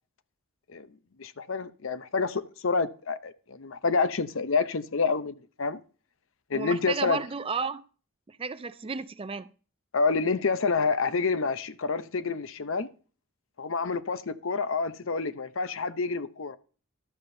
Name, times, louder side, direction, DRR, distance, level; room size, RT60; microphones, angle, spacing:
voice 1, 1.2-5.8 6.5-7.2 9.9-12.9 13.6-16.6, left 4 dB, 60° left, 0.7 m, -28 dB
voice 2, 6.5-7.8 8.3-9.5, right 5 dB, 25° right, 0.4 m, -33 dB
13.0 x 12.0 x 2.7 m
head